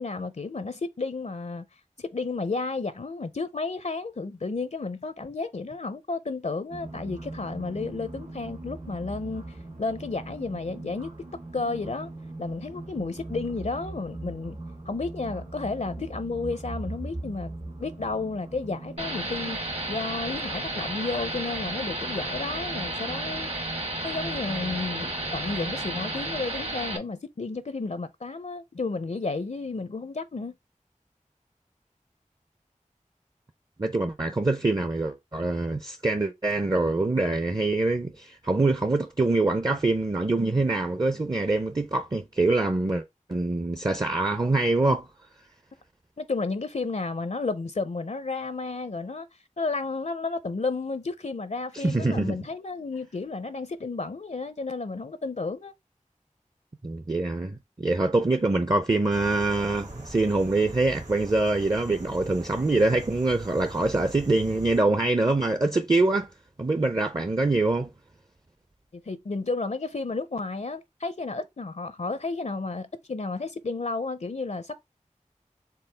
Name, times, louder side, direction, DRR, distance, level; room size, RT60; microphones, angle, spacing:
voice 1, 0.0-1.6 2.0-11.1 11.5-12.1 12.4-14.6 14.9-17.5 17.8-19.6 19.9-23.5 24.0-30.5 46.2-49.3 49.6-55.7 68.9-74.8, left 3 dB, 60° left, 0.5 m, -32 dB
sound 1, 6.7-26.5, right 2 dB, 80° right, 2.2 m, -40 dB
sound 2, 19.0-27.0, right 1 dB, 50° right, 1.2 m, -32 dB
voice 2, 33.8-43.0 43.3-45.1 51.7-52.4 56.8-66.3 66.6-67.9, right 2 dB, 30° right, 0.5 m, -24 dB
sound 3, 59.1-64.8, right 1 dB, 65° right, 1.6 m, -42 dB
4.6 x 3.4 x 3.3 m
wide cardioid pair, 45°, 13 cm